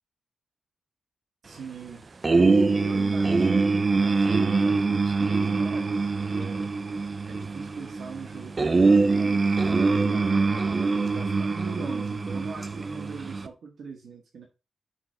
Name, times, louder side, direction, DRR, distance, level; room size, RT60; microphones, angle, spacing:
voice 1, 1.4-6.7 7.2-14.5, right 4 dB, 85° right, 1 dB, 1.2 m, -40 dB
sound 1, 2.2-13.5, right 4 dB, 35° right, 0.5 m, -24 dB
5.8 x 3.4 x 5.5 m, 0.29 s
wide cardioid pair, 120°, 0 cm